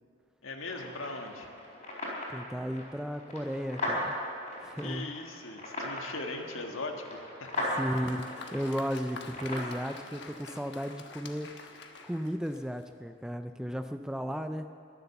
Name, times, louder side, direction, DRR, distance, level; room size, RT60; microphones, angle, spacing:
voice 1, 0.4-1.5 4.8-7.7 10.1-10.2, left 2 dB, 75° left, 3 dB, 1.6 m, -39 dB
sound 1, 0.7-9.7, left 1 dB, 30° left, 4.2 m, -38 dB
voice 2, 2.3-4.2 4.6-5.1 7.7-11.8 12.0-14.7, equal, 5° right, 9 dB, 0.3 m, -35 dB
Applause, 7.4-13.0, left 4 dB, 55° left, 1.2 m, -48 dB
22.5 x 8.1 x 7.0 m, 2.5 s
head